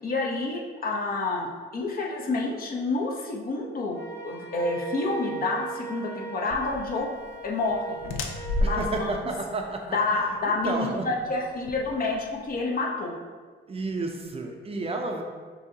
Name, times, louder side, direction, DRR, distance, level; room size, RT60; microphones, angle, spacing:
voice 1, 0.0-4.0 4.2-7.2 7.4-8.0 8.6-9.1 9.9-13.1, left 3 dB, 45° left, -2 dB, 0.8 m, -28 dB
Wind instrument woodwind instrument, 3.9-8.8, right 5 dB, 15° left, 1.3 m, -39 dB
sound 1, 6.5-12.6, left 1 dB, 85° left, 0.5 m, -34 dB
voice 2, 8.6-11.1 13.7-15.2, right 3 dB, 30° right, 3 dB, 0.5 m, -32 dB
6.2 x 2.8 x 2.8 m, 1.5 s
cardioid pair, 90°, 20 cm